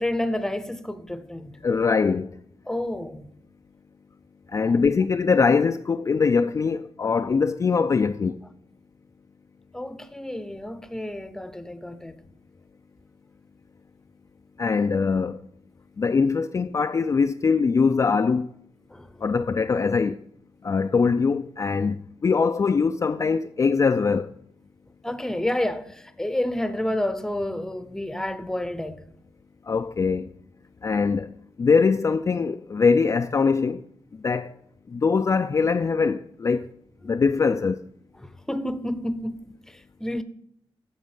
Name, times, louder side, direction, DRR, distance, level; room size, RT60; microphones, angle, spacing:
voice 1, 0.0-1.6 2.7-3.3 4.6-4.7 9.7-12.2 18.9-19.2 25.0-29.0 38.2-39.4 39.7-40.2, left 1 dB, 5° left, 0.7 m, -30 dB
voice 2, 1.6-2.3 4.5-8.4 14.6-15.4 16.0-18.5 19.2-20.2 20.6-24.3 29.7-30.3 30.8-33.8 34.1-34.6 34.9-36.7 37.0-37.9, left 5 dB, 30° left, 0.4 m, -22 dB
9.4 x 7.1 x 5.6 m
cardioid pair, 105°, 10 cm